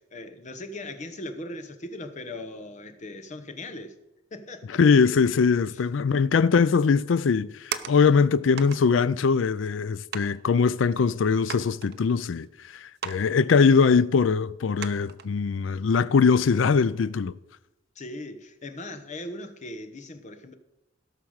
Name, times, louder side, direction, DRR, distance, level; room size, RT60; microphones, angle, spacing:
voice 1, 0.0-3.9 4.3-4.8 5.7-6.0 15.0-15.1 17.9-20.5, left 1 dB, 40° left, 1.1 m, -39 dB
voice 2, 4.8-12.5 12.7-17.4, left 5 dB, 75° left, 0.4 m, -21 dB
sound 1, 7.2-8.2 8.6-8.8 9.6-9.7 10.1-10.4 10.9-11.0 11.5-12.5 13.0-13.3 13.5-13.6 14.2-14.3 14.8-15.3 15.8-15.9, right 8 dB, 60° right, 0.7 m, -37 dB
16.5 x 6.0 x 6.4 m
head